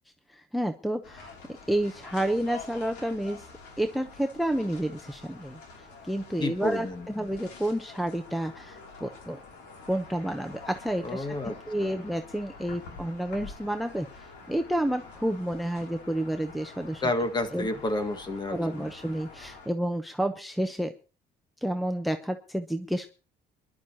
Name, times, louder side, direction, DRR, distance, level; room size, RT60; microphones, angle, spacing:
voice 1, 0.3-3.4 3.8-5.6 6.0-9.4 9.9-14.1 14.5-17.0 17.5-17.7 18.5-20.9 21.6-23.1, right 1 dB, ahead, 8 dB, 0.8 m, -30 dB
sound 1, 1.0-19.7, left 4 dB, 85° left, 2.8 m, -47 dB
voice 2, 6.4-7.1 11.0-12.0 17.0-18.9, left 2 dB, 25° left, 9 dB, 1.7 m, -30 dB
26.0 x 11.5 x 2.8 m, 0.33 s
cardioid pair, 110°, 17 cm